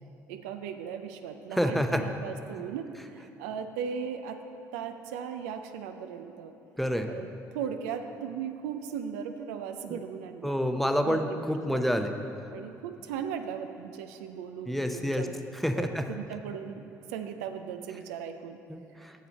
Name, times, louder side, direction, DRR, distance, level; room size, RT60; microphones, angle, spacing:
voice 1, 0.3-4.4 4.7-6.5 7.1-10.6 11.0-11.4 11.7-11.9 12.5-15.5 15.7-16.8 17.1-18.6, right 7 dB, 85° right, 7 dB, 0.4 m, -37 dB
voice 2, 1.6-2.0 6.8-7.1 10.4-12.1 14.7-15.3 15.6-16.0 18.7-19.1, equal, ahead, 6 dB, 0.6 m, -28 dB
7.3 x 7.0 x 4.1 m, 2.9 s
hypercardioid pair, 55°, 8 cm